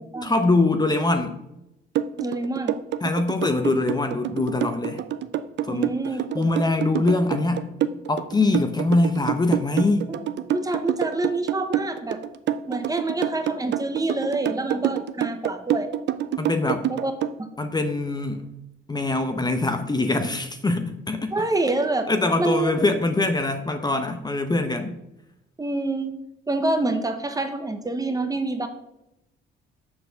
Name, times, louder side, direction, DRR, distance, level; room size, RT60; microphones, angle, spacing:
voice 1, 0.2-1.4 3.0-5.0 5.6-5.9 6.3-7.7 8.1-10.1 16.4-16.9 17.6-18.5 18.9-21.3 22.1-25.0, left 2 dB, 20° left, 7 dB, 0.7 m, -23 dB
sound 1, 1.9-17.3, right 11 dB, 65° right, 0.5 m, -26 dB
voice 2, 2.2-2.8 5.7-6.5 10.1-10.2 10.5-12.2 12.7-15.9 16.9-17.1 17.4-17.5 21.3-22.1 22.4-22.7 25.6-26.2 26.5-28.7, right 2 dB, 20° right, 7 dB, 0.9 m, -26 dB
7.0 x 4.2 x 6.6 m, 0.88 s
cardioid pair, 90°, 20 cm